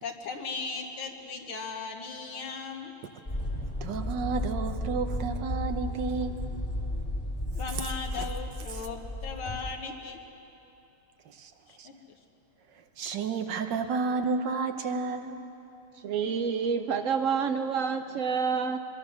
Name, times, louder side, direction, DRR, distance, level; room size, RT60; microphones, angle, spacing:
voice 1, 0.0-2.9 7.6-10.2 11.7-11.9, left 4 dB, 75° left, 2 dB, 2.2 m, -37 dB
sound 1, 3.3-9.7, left 1 dB, 20° left, 1.9 m, -34 dB
voice 2, 3.8-6.4 8.2-8.3 8.7-8.8 11.2-11.5 11.8-11.9 12.7-15.4, right 4 dB, 60° right, 7 dB, 1.5 m, -31 dB
voice 3, 16.0-18.8, right 6 dB, 85° right, 7 dB, 0.7 m, -28 dB
24.0 x 22.0 x 6.4 m, 2.9 s
omnidirectional pair, 2.3 m